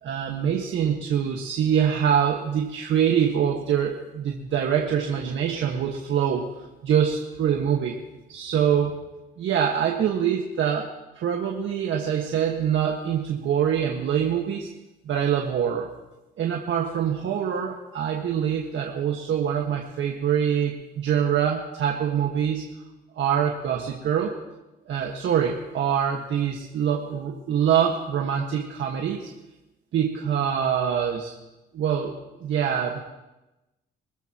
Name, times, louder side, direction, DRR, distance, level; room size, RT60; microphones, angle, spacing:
voice 1, 0.0-6.5 6.8-8.0 8.3-8.9 9.4-10.9 11.2-14.7 15.1-15.9 16.4-22.7 23.2-24.3 24.9-29.3 29.9-31.3 31.7-32.1 32.4-33.0, right 8 dB, 70° right, 0 dB, 1.7 m, -24 dB
24.0 x 14.0 x 3.0 m, 1.0 s
cardioid pair, 90°, 20 cm